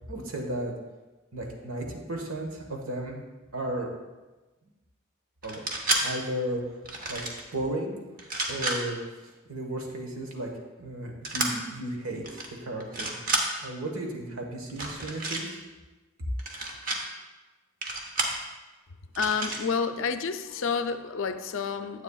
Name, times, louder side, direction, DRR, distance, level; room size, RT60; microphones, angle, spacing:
voice 1, 0.1-0.7 1.3-3.2 3.5-3.9 5.4-5.6 6.0-6.8 7.1-7.2 7.5-8.0 8.5-10.5 10.8-13.2 13.6-15.6, right 1 dB, 85° right, 1 dB, 1.3 m, -34 dB
sound 1, 5.4-6.0 6.8-7.4 8.2-8.8 11.2-11.5 12.2-12.5 12.8-13.4 14.7-15.4 16.4-17.0 17.8-18.4 19.1-19.6, right 2 dB, 40° right, 0.9 m, -30 dB
voice 2, 19.2-22.0, left 5 dB, 70° left, 9 dB, 0.4 m, -29 dB
9.7 x 8.1 x 2.4 m, 1.2 s
head